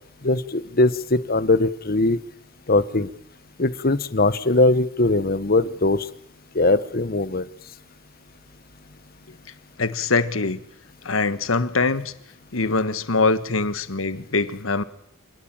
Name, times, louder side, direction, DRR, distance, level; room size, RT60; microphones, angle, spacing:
voice 1, 0.2-2.2 2.7-3.1 3.6-6.0 6.5-7.4, left 2 dB, 50° left, 14 dB, 1.1 m, -20 dB
voice 2, 9.8-10.6 11.0-12.1 12.5-14.8, left 3 dB, 85° left, 12 dB, 1.5 m, -23 dB
27.0 x 17.5 x 8.9 m, 0.71 s
head